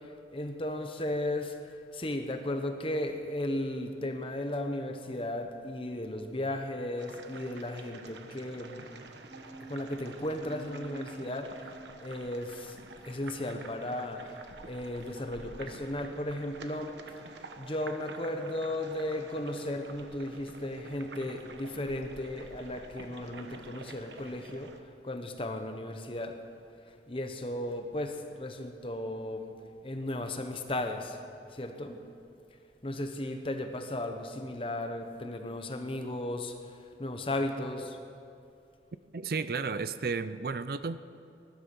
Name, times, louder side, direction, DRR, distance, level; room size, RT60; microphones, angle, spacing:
voice 1, 0.0-1.6 1.9-8.9 9.7-12.8 13.0-17.0 17.6-26.4 26.9-29.5 29.8-31.2 31.5-32.0 32.8-36.5 37.0-38.0, left 1 dB, 30° left, 5 dB, 1.1 m, -35 dB
sound 1, 7.0-24.8, right 3 dB, 80° right, 1.1 m, -49 dB
sound 2, 9.3-14.2, right 2 dB, 15° right, 0.9 m, -50 dB
voice 2, 39.1-41.0, right 4 dB, 55° right, 13 dB, 0.5 m, -33 dB
19.5 x 11.5 x 6.1 m, 2.5 s
head